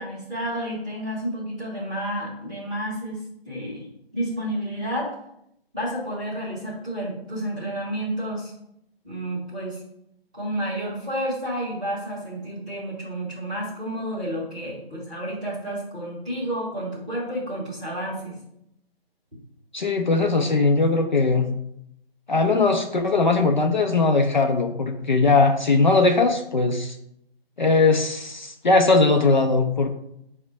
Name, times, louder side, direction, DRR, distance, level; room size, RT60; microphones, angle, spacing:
voice 1, 0.0-3.9 4.1-5.1 5.7-8.5 9.0-9.8 10.3-18.3, right 1 dB, 10° right, -12 dB, 0.7 m, -30 dB
voice 2, 19.7-21.5 22.3-27.0 27.6-29.9, left 3 dB, 50° left, 4 dB, 0.4 m, -20 dB
5.0 x 2.1 x 4.4 m, 0.76 s
figure-of-eight pair, 165°, 31 cm